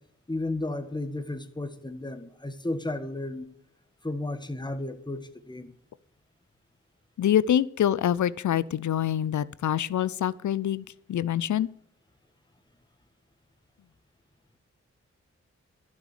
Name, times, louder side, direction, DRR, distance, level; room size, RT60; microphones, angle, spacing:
voice 1, 0.3-3.5 4.0-5.7, left 2 dB, 15° left, 1.4 m, -33 dB
voice 2, 7.2-11.7, left 10 dB, 80° left, 0.5 m, -25 dB
11.5 x 6.4 x 6.6 m
cardioid pair, 45°, 29 cm